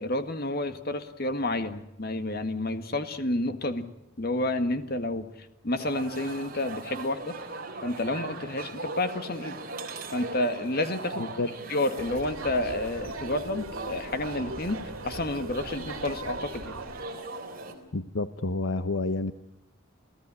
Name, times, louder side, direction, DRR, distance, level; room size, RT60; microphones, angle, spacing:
voice 1, 0.0-3.9 4.2-7.3 7.8-9.6 10.1-11.3 11.7-16.8, left 1 dB, 45° left, 9 dB, 1.8 m, -30 dB
sound 1, 5.8-17.8, right 3 dB, 45° right, 3.7 m, -39 dB
voice 2, 11.2-11.5 17.9-19.3, left 2 dB, 70° left, 11 dB, 0.9 m, -29 dB
sound 2, 12.0-17.0, right 2 dB, 80° right, 2.7 m, -40 dB
29.0 x 16.5 x 9.9 m, 0.85 s
head